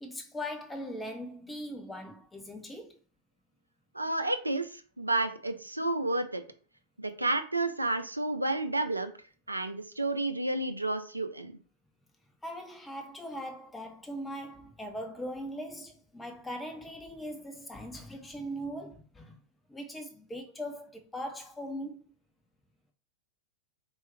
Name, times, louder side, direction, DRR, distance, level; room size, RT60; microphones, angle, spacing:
voice 1, 0.0-3.0 12.4-19.4 19.7-22.1, equal, 10° left, 0.6 m, -40 dB
voice 2, 3.9-6.4 7.0-9.1 9.5-11.6, right 2 dB, 85° right, 0.5 m, -31 dB
4.5 x 3.0 x 3.4 m
figure-of-eight pair, 90°, 0 cm